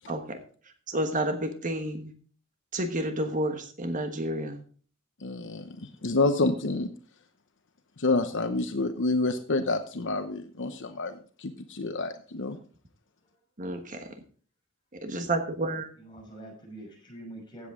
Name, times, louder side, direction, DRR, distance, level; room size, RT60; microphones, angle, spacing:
voice 1, 0.1-0.4 0.9-2.1 2.7-4.6 13.6-14.2 14.9-15.9, right 1 dB, 40° right, 7 dB, 1.3 m, -30 dB
voice 2, 5.2-6.9 8.0-12.6, left 3 dB, 60° left, 8 dB, 0.9 m, -28 dB
voice 3, 15.9-17.7, right 1 dB, 20° left, -2 dB, 6.0 m, -45 dB
16.0 x 8.1 x 3.7 m, 0.42 s
head